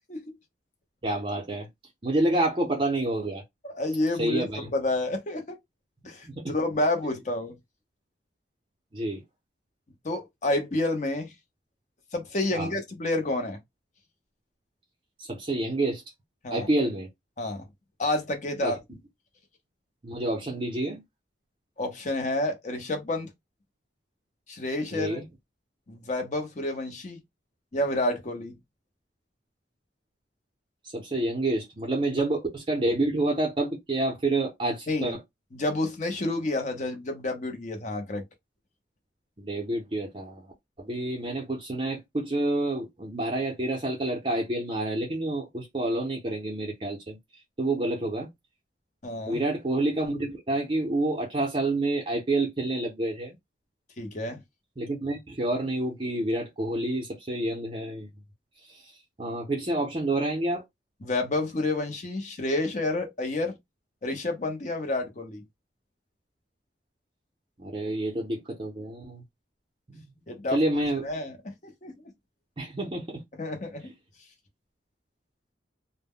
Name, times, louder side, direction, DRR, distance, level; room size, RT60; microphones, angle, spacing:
voice 1, 1.0-1.7 2.0-3.4 4.2-4.7 6.2-6.5 8.9-9.2 12.5-12.7 15.2-16.0 16.5-17.1 18.6-18.8 20.0-21.0 24.9-25.2 30.8-35.2 39.4-40.5 40.8-47.2 47.6-48.3 49.3-53.3 54.8-58.1 58.6-60.6 67.6-69.2 69.9-70.0 70.5-71.1 72.6-73.2 73.8-73.9, right 2 dB, 30° right, 0.6 m, -28 dB
voice 2, 3.6-5.6 6.0-7.5 10.0-11.3 12.1-13.6 16.4-16.7 17.4-17.7 18.0-18.8 21.8-23.3 24.5-25.2 25.9-27.2 27.7-28.5 34.9-35.1 35.5-38.2 49.0-49.4 54.0-54.4 61.0-63.6 64.0-65.4 70.3-70.6 71.0-71.3 71.6-71.9 73.4-73.9, left 2 dB, 40° left, 0.7 m, -29 dB
2.1 x 2.1 x 3.5 m
head